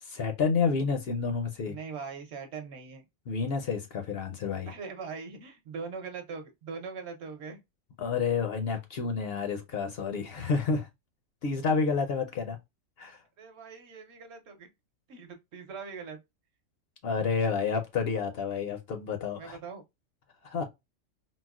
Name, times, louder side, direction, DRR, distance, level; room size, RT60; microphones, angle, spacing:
voice 1, 0.0-1.7 3.3-4.7 8.0-10.9 11.4-12.6 13.0-13.2 17.0-19.6 20.4-20.6, left 5 dB, 65° left, 0.7 m, -29 dB
voice 2, 1.6-3.0 4.7-7.6 13.4-14.7 15.1-16.2 19.3-19.8, right 5 dB, 65° right, 0.9 m, -41 dB
4.0 x 2.0 x 2.3 m
omnidirectional pair, 1.3 m